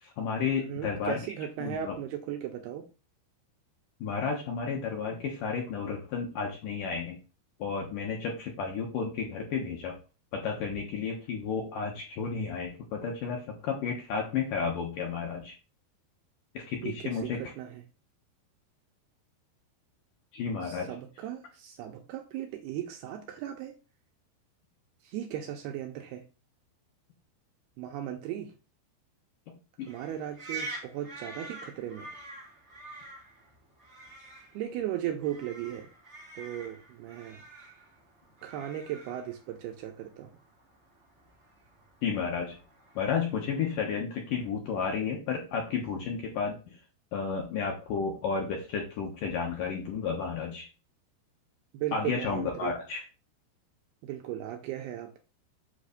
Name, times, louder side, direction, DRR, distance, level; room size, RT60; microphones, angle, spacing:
voice 1, 0.0-1.2 1.6-2.0 4.0-7.2 7.6-10.0 10.3-15.5 16.5-17.4 20.3-20.9 29.8-29.9 42.0-42.6 43.0-46.8 47.1-50.7 51.9-53.0, left 5 dB, 65° left, 0 dB, 2.2 m, -32 dB
voice 2, 0.6-2.9 16.8-17.8 20.6-23.7 25.0-26.2 27.8-28.5 29.9-32.2 34.5-35.9 36.4-37.4 38.4-40.3 51.7-52.7 54.0-55.2, right 11 dB, 75° right, 4 dB, 2.5 m, -37 dB
sound 1, 29.8-43.9, right 3 dB, 55° right, 0.7 m, -47 dB
8.2 x 3.2 x 6.5 m, 0.32 s
omnidirectional pair, 5.2 m